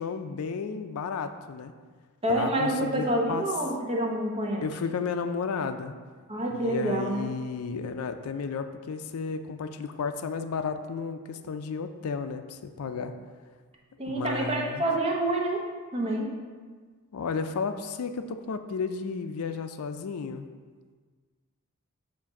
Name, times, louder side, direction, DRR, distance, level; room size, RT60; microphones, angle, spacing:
voice 1, 0.0-1.7 2.3-3.5 4.6-5.9 6.5-13.1 14.1-14.9 17.1-20.5, left 5 dB, 80° left, 9 dB, 0.4 m, -33 dB
voice 2, 2.2-4.7 6.3-7.3 14.0-15.6 15.9-16.3, right 1 dB, 25° right, -1 dB, 0.8 m, -27 dB
7.1 x 2.6 x 5.7 m, 1.5 s
head